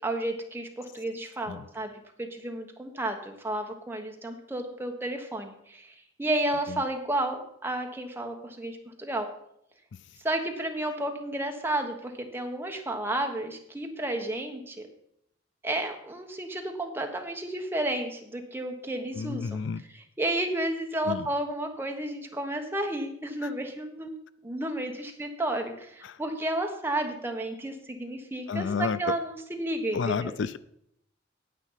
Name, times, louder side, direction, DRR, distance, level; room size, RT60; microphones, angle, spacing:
voice 1, 0.0-1.9 2.2-9.3 10.2-14.9 15.6-19.5 20.2-24.1 24.4-30.3, right 1 dB, 10° right, 3 dB, 1.3 m, -32 dB
voice 2, 19.1-19.8 21.0-21.3 23.4-23.5 26.0-26.2 28.5-29.0 29.9-30.6, left 5 dB, 65° left, 16 dB, 0.4 m, -31 dB
9.2 x 8.4 x 5.7 m, 0.73 s
head